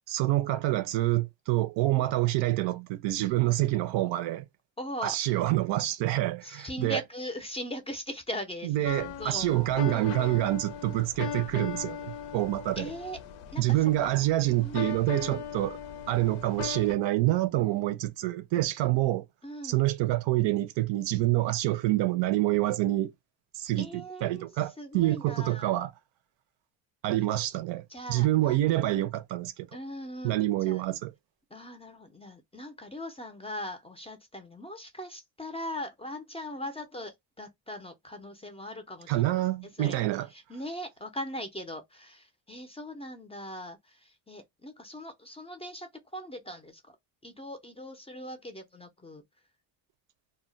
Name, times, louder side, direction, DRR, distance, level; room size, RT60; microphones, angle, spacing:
voice 1, 0.1-4.4 5.0-7.0 8.6-12.9 13.6-15.8 16.1-19.3 19.6-23.1 23.6-25.9 27.0-29.7 30.2-31.1 39.1-40.3, right 16 dB, 75° right, 0.5 m, -27 dB
voice 2, 4.8-5.2 6.4-10.4 12.8-13.2 13.5-14.4 14.6-15.5 19.4-19.8 23.8-25.7 27.2-27.3 27.9-28.6 29.7-30.8 31.5-39.3 39.8-40.0 40.3-47.0 47.2-49.2, left 1 dB, 15° left, 0.4 m, -40 dB
sound 1, 8.8-16.9, left 9 dB, 85° left, 0.6 m, -39 dB
2.2 x 2.1 x 3.7 m
cardioid pair, 125°, 45 cm